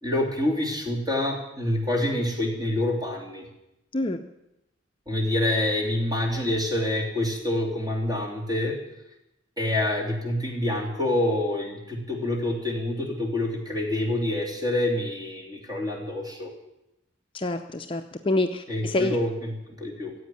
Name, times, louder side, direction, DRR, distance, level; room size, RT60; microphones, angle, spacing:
voice 1, 0.0-3.5 5.1-8.7 9.6-16.5 18.7-20.1, left 1 dB, 20° right, -1 dB, 3.3 m, -27 dB
voice 2, 3.9-4.2 17.3-19.2, left 2 dB, 30° left, 5 dB, 0.6 m, -27 dB
15.0 x 8.4 x 9.4 m, 0.89 s
head